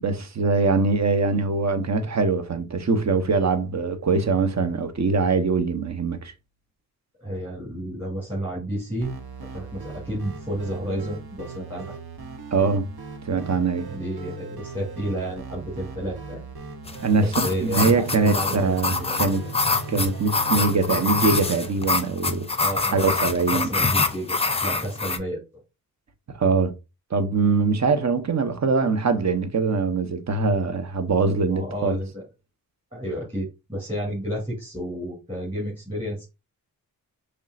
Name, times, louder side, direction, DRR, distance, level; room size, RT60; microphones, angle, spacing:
voice 1, 0.0-6.3 12.5-12.9 13.2-13.9 17.0-19.4 19.9-22.5 22.9-23.7 26.3-26.7 27.1-32.0, right 4 dB, 45° right, 0.8 m, -22 dB
voice 2, 7.2-9.1 9.5-11.9 13.9-16.4 17.1-18.7 19.0-19.3 22.6-23.1 23.5-25.4 31.4-32.2 32.9-36.3, equal, 15° right, 2.7 m, -31 dB
sound 1, 9.0-21.7, right 4 dB, 75° right, 0.9 m, -39 dB
sound 2, 16.9-25.2, left 3 dB, 15° left, 0.6 m, -25 dB
5.3 x 3.2 x 2.4 m
cardioid pair, 50°, 38 cm